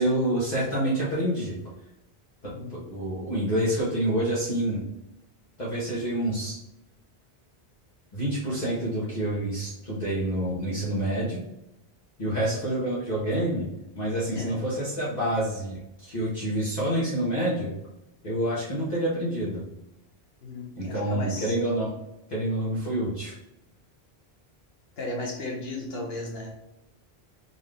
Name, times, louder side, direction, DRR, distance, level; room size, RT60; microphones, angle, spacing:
voice 1, 0.0-1.6 2.4-4.8 5.6-6.6 8.1-11.4 12.2-13.7 13.9-17.7 18.2-19.6 20.8-21.9 22.3-23.3, right 1 dB, 45° left, -8 dB, 1.2 m, -27 dB
voice 2, 2.5-2.8 12.2-12.6 14.3-14.5 20.4-21.5 25.0-26.5, left 2 dB, 75° left, 0 dB, 1.2 m, -35 dB
3.9 x 2.7 x 3.3 m, 0.88 s
omnidirectional pair, 1.0 m